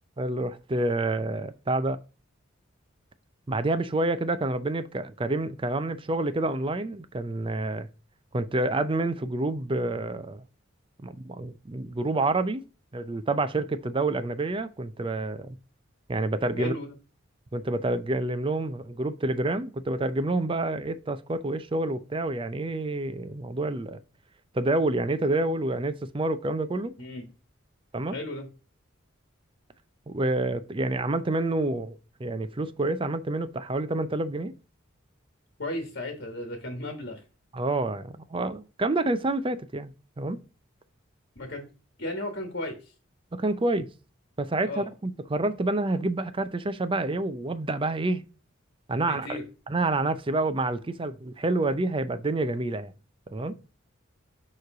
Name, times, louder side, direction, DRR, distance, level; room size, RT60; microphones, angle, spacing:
voice 1, 0.2-2.0 3.5-7.9 8.3-10.4 11.0-12.6 12.9-15.6 16.1-16.7 17.5-24.0 24.5-27.0 27.9-28.2 30.1-34.5 37.5-40.4 43.3-43.9 44.4-48.2 48.9-49.4 49.7-52.9 53.3-53.6, right 2 dB, 25° right, 0.5 m, -28 dB
voice 2, 16.6-16.9 27.0-27.3 28.1-28.5 35.6-37.2 41.3-41.6 42.0-42.9 44.7-44.9 49.0-49.4, left 1 dB, 55° left, 1.5 m, -35 dB
6.9 x 3.2 x 4.8 m
head